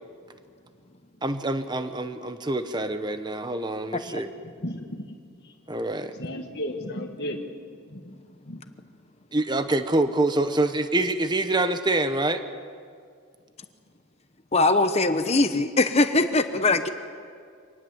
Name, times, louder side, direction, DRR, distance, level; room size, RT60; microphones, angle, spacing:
voice 1, 1.2-4.3 5.7-6.1 9.3-12.4, right 2 dB, 20° right, 9 dB, 1.0 m, -26 dB
voice 2, 4.6-5.1 5.4-5.5 6.1-7.5 7.9-8.2 8.4-8.6, left 1 dB, 50° left, 0 dB, 1.7 m, -34 dB
voice 3, 14.5-16.9, left 2 dB, 30° left, 8 dB, 0.9 m, -21 dB
26.0 x 19.5 x 8.0 m, 2.2 s
head